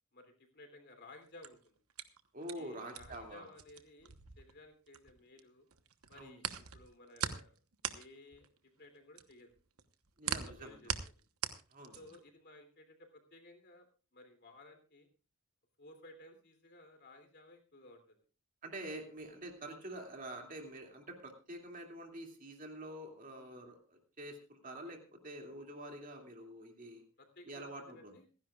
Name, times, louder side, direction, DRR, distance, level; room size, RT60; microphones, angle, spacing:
voice 1, 0.1-1.8 2.5-5.7 6.1-7.6 7.9-9.5 10.2-11.2 11.9-15.1 15.8-18.2 19.4-19.5 23.3-23.6 24.9-25.0 26.8-28.3, left 2 dB, 50° left, 5 dB, 3.2 m, -57 dB
sound 1, 1.2-5.4 5.7-12.3, right 8 dB, 85° right, 1.1 m, -41 dB
voice 2, 2.3-3.5 6.1-6.4 10.2-10.8 11.7-12.0 18.6-27.0 27.5-28.1, right 1 dB, 40° right, 3 dB, 2.6 m, -47 dB
27.0 x 10.5 x 2.4 m, 0.35 s
head